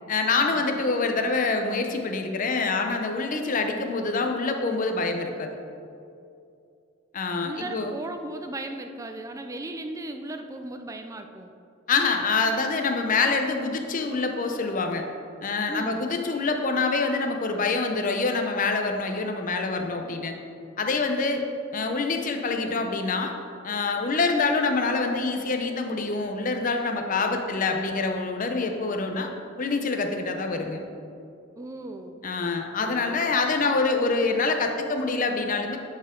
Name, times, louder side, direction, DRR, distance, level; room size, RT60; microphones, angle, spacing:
voice 1, 0.1-5.5 7.1-7.9 11.9-15.0 15.4-20.3 20.8-21.4 21.7-23.3 23.6-29.3 29.6-30.8 32.2-35.8, left 3 dB, 40° left, 4 dB, 0.6 m, -26 dB
voice 2, 7.4-11.5 15.7-16.0 31.6-32.2 32.8-33.2, right 2 dB, 15° right, 6 dB, 0.3 m, -37 dB
10.5 x 4.4 x 3.7 m, 2.6 s
head